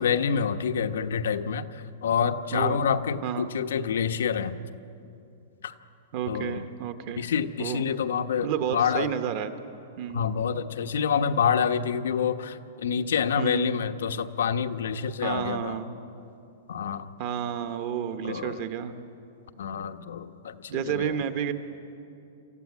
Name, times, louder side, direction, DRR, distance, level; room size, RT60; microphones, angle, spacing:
voice 1, 0.0-4.6 5.6-5.7 6.3-6.7 7.2-9.1 10.1-15.8 16.7-17.1 18.2-18.6 19.6-21.2, left 7 dB, 85° left, 8 dB, 1.1 m, -27 dB
voice 2, 3.2-3.5 6.1-7.3 7.6-7.8 8.4-9.5 10.0-10.3 13.3-13.7 15.2-15.9 17.2-18.9 20.7-21.5, right 9 dB, 35° right, 9 dB, 1.0 m, -30 dB
27.0 x 15.0 x 9.6 m, 2.7 s
supercardioid pair, 175°, 0 cm